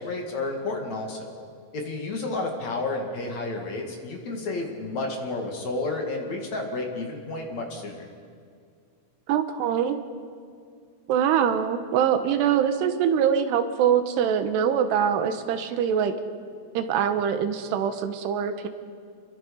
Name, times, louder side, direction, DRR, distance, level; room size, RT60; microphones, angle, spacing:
voice 1, 0.0-1.3 1.7-8.1, left 2 dB, 50° left, 1 dB, 3.1 m, -31 dB
voice 2, 9.3-10.0 11.1-16.1 16.7-18.7, right 8 dB, 85° right, 9 dB, 3.2 m, -23 dB
28.5 x 23.0 x 5.5 m, 2.2 s
omnidirectional pair, 4.8 m